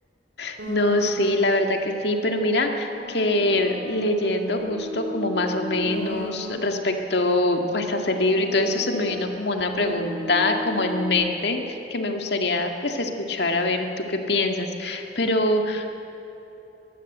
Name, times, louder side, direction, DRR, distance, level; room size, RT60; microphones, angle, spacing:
voice 1, 0.4-16.0, left 2 dB, 65° left, 4 dB, 2.0 m, -24 dB
sound 1, 0.6-1.7 2.4-6.9 7.7-11.1, right 1 dB, 75° right, 3.1 m, -36 dB
22.5 x 15.5 x 8.0 m, 3.0 s
head